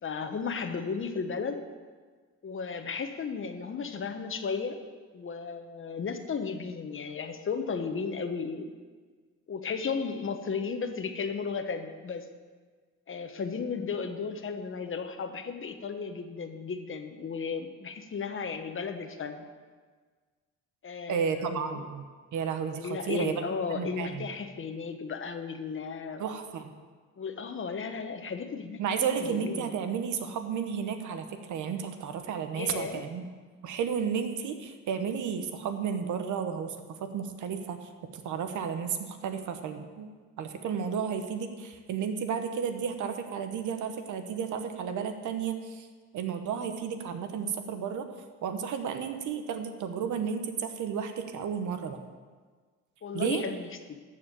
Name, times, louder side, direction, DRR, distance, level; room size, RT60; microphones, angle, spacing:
voice 1, 0.0-1.6 2.4-4.8 5.1-8.7 9.5-12.3 13.1-19.4 20.8-21.8 22.8-26.2 27.2-29.7 32.5-33.1 53.0-54.0, left 5 dB, 45° left, 7 dB, 1.1 m, -34 dB
voice 2, 21.1-22.1 22.3-23.4 23.7-24.3 26.2-26.7 28.8-33.2 33.6-40.1 40.4-45.9 46.1-48.1 48.4-52.0 53.1-53.4, right 7 dB, 75° right, 7 dB, 1.1 m, -32 dB
13.5 x 4.9 x 7.4 m, 1.5 s
cardioid pair, 90°, 30 cm